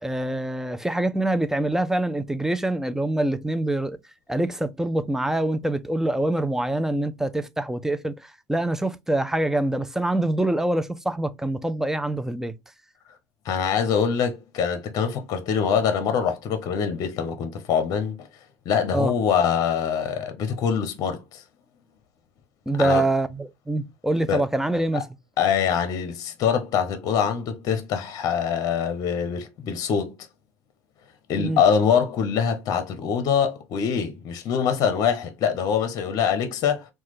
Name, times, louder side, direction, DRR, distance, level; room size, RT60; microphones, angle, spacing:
voice 1, 0.0-4.0 4.3-12.5 18.9-19.1 22.7-25.1 31.4-31.6, right 1 dB, 5° right, 0.3 m, -25 dB
voice 2, 13.4-18.3 18.7-21.4 22.8-23.0 24.3-24.4 24.9-25.0 25.4-30.1 31.3-36.9, left 7 dB, 50° left, 0.7 m, -24 dB
3.1 x 2.2 x 3.0 m
hypercardioid pair, 85°, 8 cm